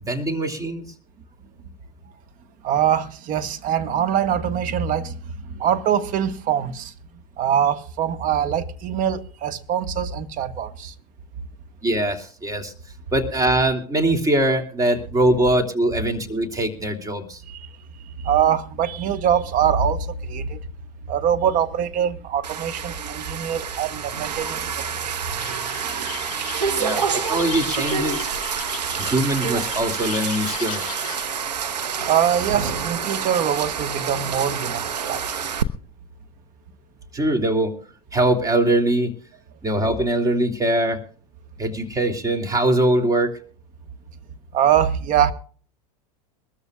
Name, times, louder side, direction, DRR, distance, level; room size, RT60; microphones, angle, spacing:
voice 1, 0.0-0.8 11.8-12.7 13.1-17.4 26.8-28.3 29.0-30.9 37.1-37.7 38.1-39.1 39.6-41.0 41.6-43.4, right 1 dB, 15° right, 2.9 m, -22 dB
voice 2, 2.6-5.2 5.5-6.9 7.4-10.9 17.5-17.7 18.2-20.6 21.1-26.9 32.1-35.2 44.5-45.3, right 9 dB, 40° right, 1.4 m, -23 dB
sound 1, 22.4-35.6, right 7 dB, 90° right, 1.1 m, -28 dB
Pub Garden Aviary, 25.4-31.2, left 15 dB, 40° left, 1.9 m, -37 dB
23.5 x 13.5 x 2.4 m
hypercardioid pair, 95°, 20 cm